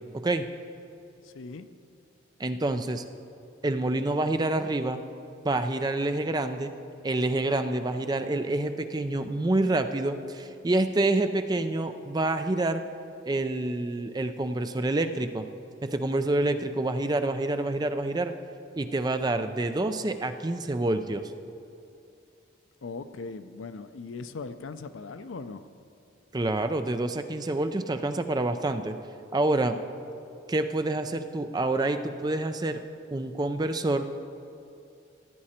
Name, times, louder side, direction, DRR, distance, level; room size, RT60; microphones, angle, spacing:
voice 1, 0.1-0.5 2.4-3.0 3.6-5.0 5.4-6.7 7.0-12.8 13.2-15.5 15.8-18.3 18.8-21.3 26.3-29.0 29.3-29.8 30.5-32.8 33.1-34.1, right 2 dB, 20° right, 8 dB, 0.4 m, -27 dB
voice 2, 1.2-1.7 22.8-25.7, left 4 dB, 75° left, 11 dB, 0.5 m, -39 dB
15.5 x 9.6 x 4.3 m, 2.6 s
head